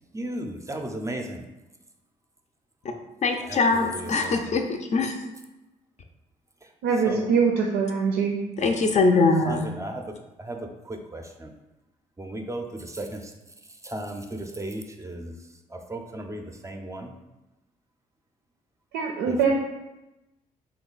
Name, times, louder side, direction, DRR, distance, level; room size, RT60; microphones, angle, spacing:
voice 1, 0.1-1.4 3.4-4.6 6.6-6.7 7.0-7.3 9.4-11.5 12.2-13.3 13.6-17.1 19.2-19.5, right 1 dB, 20° right, 3 dB, 0.5 m, -36 dB
voice 2, 3.2-5.2 8.6-9.7, left 3 dB, 45° left, 5 dB, 0.5 m, -22 dB
voice 3, 6.8-8.4 18.9-19.5, right 5 dB, 80° right, 1 dB, 0.4 m, -23 dB
2.9 x 2.3 x 3.9 m, 1.0 s
hypercardioid pair, 50°, 17 cm